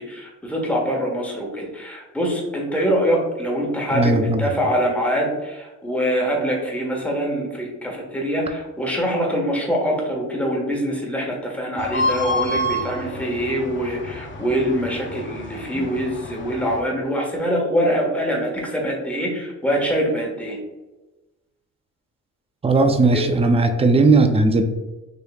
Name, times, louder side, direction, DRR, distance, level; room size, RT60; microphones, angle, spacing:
voice 1, 0.0-20.6 23.1-23.3, equal, 5° left, -1 dB, 1.3 m, -24 dB
voice 2, 3.9-4.4 15.7-15.9 22.6-24.6, right 3 dB, 20° right, 6 dB, 0.5 m, -17 dB
sound 1, 11.8-16.8, left 1 dB, 40° left, 0.8 m, -29 dB
5.1 x 3.1 x 2.3 m, 1.1 s
cardioid pair, 90°, 30 cm